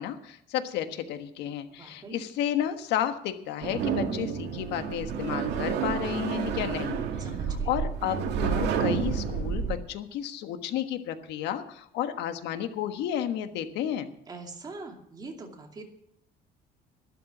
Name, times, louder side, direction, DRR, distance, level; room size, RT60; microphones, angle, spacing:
voice 1, 0.0-7.0 7.7-14.1, left 10 dB, 90° left, 8 dB, 1.4 m, -32 dB
voice 2, 1.7-2.2 7.2-7.8 14.3-15.8, right 3 dB, 25° right, 2 dB, 2.6 m, -43 dB
sound 1, 3.6-9.8, right 7 dB, 85° right, 1.9 m, -30 dB
12.5 x 12.0 x 6.1 m, 0.71 s
cardioid pair, 155°, 17 cm